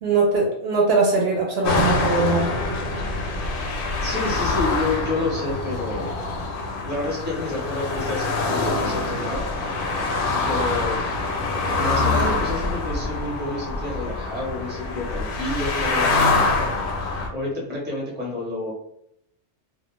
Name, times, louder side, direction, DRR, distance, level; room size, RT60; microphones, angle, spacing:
voice 1, 0.0-2.5, right 3 dB, 65° right, -1 dB, 0.8 m, -21 dB
sound 1, 1.6-17.3, left 3 dB, 60° left, 0.6 m, -25 dB
voice 2, 4.0-6.1 6.8-9.4 10.4-11.0 11.7-16.1 17.3-18.7, left 2 dB, 10° right, -3 dB, 0.6 m, -29 dB
2.4 x 2.0 x 3.0 m, 0.74 s
omnidirectional pair, 1.2 m